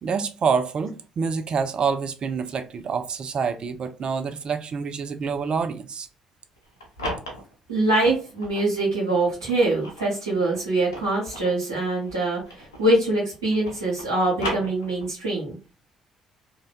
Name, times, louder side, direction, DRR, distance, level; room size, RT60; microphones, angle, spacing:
voice 1, 0.0-6.1, right 5 dB, 45° right, 0.3 m, -27 dB
sound 1, 6.6-8.7 9.3-13.0 13.3-15.3, equal, 80° left, 0.6 m, -36 dB
voice 2, 7.7-15.6, right 2 dB, 85° right, 1.0 m, -24 dB
2.6 x 2.1 x 2.3 m
figure-of-eight pair, 45°, 2 cm